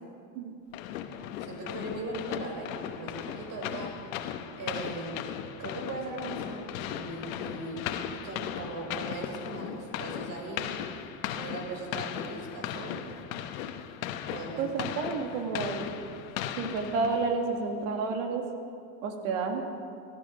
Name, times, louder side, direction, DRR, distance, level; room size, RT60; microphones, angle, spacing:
sound 1, 0.7-17.5, left 10 dB, 85° left, 1.0 m, -37 dB
voice 1, 1.4-3.9 4.2-4.3 4.6-5.2 5.6-10.7 11.3-13.0 14.3-14.7, right 2 dB, 50° right, 1 dB, 4.8 m, -39 dB
voice 2, 14.6-15.8 16.6-18.5 19.0-19.6, right 4 dB, 80° right, 4 dB, 2.0 m, -30 dB
18.0 x 12.5 x 5.1 m, 2.4 s
supercardioid pair, 110°, 40 cm